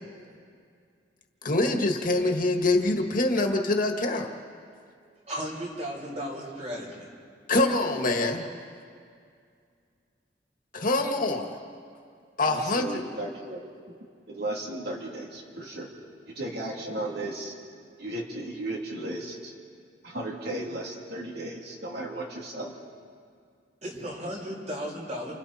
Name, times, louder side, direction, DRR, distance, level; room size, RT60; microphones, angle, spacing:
voice 1, 1.4-4.3 7.5-8.5 10.7-11.5 12.4-13.0, left 2 dB, 50° left, 3 dB, 1.9 m, -25 dB
voice 2, 5.3-7.1 23.8-25.3, equal, 40° right, -2 dB, 6.3 m, -35 dB
voice 3, 12.4-13.7 14.3-15.9 16.3-17.5 18.0-19.5 20.0-22.7, right 1 dB, 65° right, -2 dB, 3.1 m, -35 dB
30.0 x 29.5 x 4.4 m, 2.2 s
head